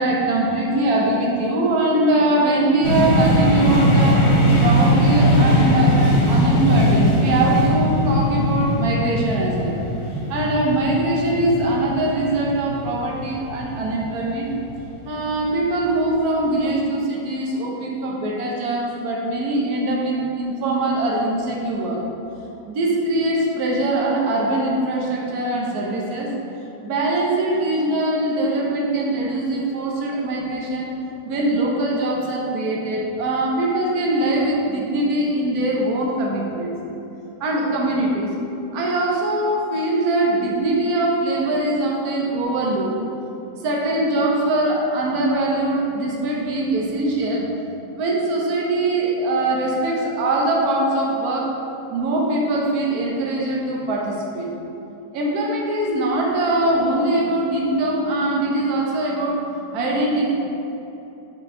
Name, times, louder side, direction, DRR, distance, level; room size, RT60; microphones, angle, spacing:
voice 1, 0.0-4.2 4.6-6.0 6.2-9.7 10.1-14.5 15.0-22.0 22.6-26.3 26.8-30.9 31.2-36.7 37.4-38.3 38.7-42.9 43.6-47.4 47.9-51.5 51.9-54.5 55.1-60.3, right 2 dB, 60° right, -2 dB, 1.4 m, -22 dB
sound 1, 2.8-14.6, equal, 50° left, 1.6 m, -19 dB
6.3 x 4.2 x 4.6 m, 3.0 s
omnidirectional pair, 1.9 m